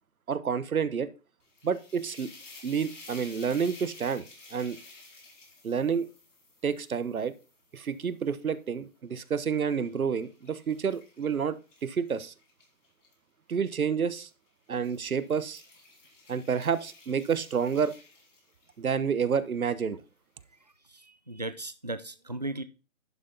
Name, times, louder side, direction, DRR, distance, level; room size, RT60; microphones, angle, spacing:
voice 1, 0.3-1.1 1.6-2.3 2.6-4.3 4.5-4.8 5.6-6.1 6.6-7.3 7.7-11.6 11.8-12.3 13.5-14.3 14.7-15.6 16.3-17.9 18.8-20.0, right 6 dB, 85° right, 1.1 m, -29 dB
sound 1, 1.4-8.6 9.2-13.1 14.0-14.3 14.7-18.9, left 3 dB, 60° left, 4.3 m, -52 dB
voice 2, 20.9-22.6, right 2 dB, 30° right, 0.4 m, -36 dB
11.0 x 5.9 x 3.9 m
hypercardioid pair, 165°, 41 cm